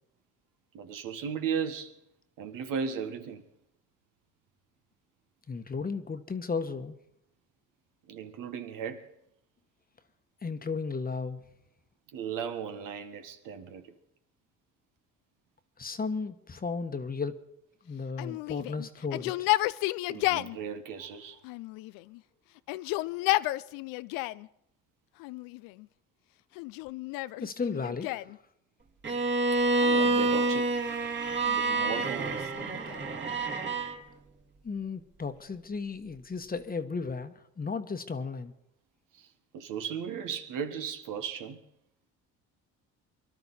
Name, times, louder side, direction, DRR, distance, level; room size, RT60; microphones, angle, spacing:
voice 1, 0.7-2.0 2.4-3.4 8.1-9.1 12.1-13.9 20.1-21.4 29.5-30.7 31.5-32.4 39.1-39.3 39.5-41.6, right 7 dB, 75° right, 1.6 m, -36 dB
voice 2, 5.5-7.0 10.4-11.4 15.8-17.3 17.9-19.5 27.4-28.2 34.6-38.5, left 4 dB, 25° left, 1.2 m, -34 dB
Yell, 18.2-20.6 21.4-22.2 22.6-24.5 25.2-25.9 26.6-28.4 29.7-30.6 31.4-33.2, left 19 dB, 85° left, 0.5 m, -33 dB
Bowed string instrument, 29.0-34.0, right 3 dB, 35° right, 2.0 m, -28 dB
23.5 x 12.0 x 4.2 m
supercardioid pair, 75°, 33 cm